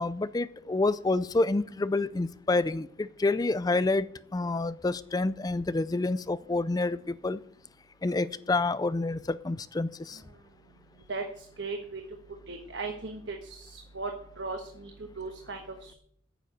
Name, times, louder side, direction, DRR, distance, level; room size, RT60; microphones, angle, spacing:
voice 1, 0.0-7.4 8.0-10.2, left 2 dB, 20° left, 16 dB, 0.4 m, -28 dB
voice 2, 11.1-12.0 12.5-15.9, right 3 dB, 60° right, 4 dB, 1.3 m, -37 dB
9.3 x 7.4 x 9.1 m, 0.65 s
head